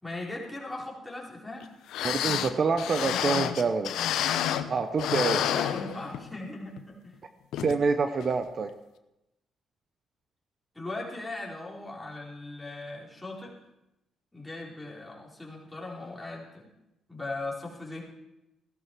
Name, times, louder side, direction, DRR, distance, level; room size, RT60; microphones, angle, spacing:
voice 1, 0.0-1.7 5.5-7.2 10.7-13.5 14.3-16.7 17.1-18.0, left 2 dB, 10° left, -4 dB, 4.3 m, -39 dB
sound 1, 1.6-1.7 1.9-4.7 5.0-6.4 6.8-6.9 7.5-7.8 8.2-8.3, left 10 dB, 85° left, 0.7 m, -29 dB
voice 2, 2.0-3.9 4.7-5.5 7.6-8.7, right 4 dB, 45° right, 9 dB, 0.8 m, -27 dB
16.0 x 12.5 x 4.7 m, 0.92 s
cardioid pair, 90°, 0 cm